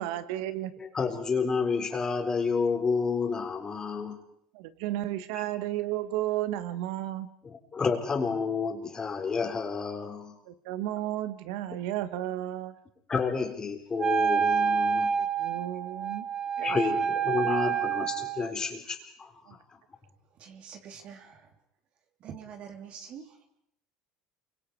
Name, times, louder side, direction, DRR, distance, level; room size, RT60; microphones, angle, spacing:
voice 1, 0.0-0.7 4.5-7.3 10.4-12.7 15.2-16.2 16.6-16.8 19.5-19.6, right 14 dB, 75° right, 12 dB, 1.7 m, -33 dB
voice 2, 0.8-4.2 5.3-5.4 7.4-10.4 13.1-15.2 16.6-19.3, left 5 dB, 25° left, 4 dB, 4.2 m, -30 dB
Wind instrument woodwind instrument, 14.0-18.5, right 7 dB, 30° right, 2.0 m, -28 dB
voice 3, 20.3-21.5 22.2-23.4, right 7 dB, 50° right, 4 dB, 3.3 m, -45 dB
28.0 x 24.5 x 4.9 m, 0.74 s
supercardioid pair, 95°, 3 cm